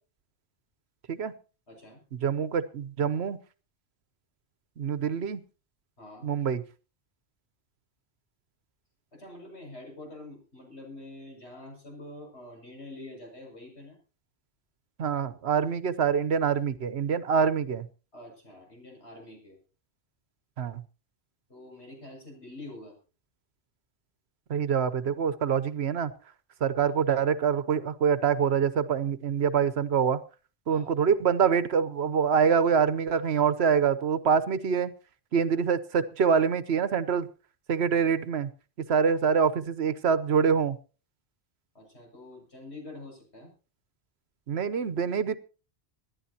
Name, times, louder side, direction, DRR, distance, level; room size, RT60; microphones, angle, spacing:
voice 1, 1.7-2.0 6.0-6.3 9.1-14.0 18.1-19.6 21.5-22.9 26.8-26.9 30.7-30.9 41.8-43.5, left 2 dB, 80° left, 0 dB, 6.9 m, -46 dB
voice 2, 2.2-3.4 4.8-5.4 6.2-6.6 15.0-17.9 20.6-20.8 24.5-26.1 26.6-30.2 30.7-34.9 35.3-37.3 37.7-38.5 38.8-40.8 44.5-45.4, right 6 dB, 75° right, 15 dB, 1.1 m, -25 dB
26.0 x 11.0 x 2.8 m, 0.36 s
omnidirectional pair, 1.1 m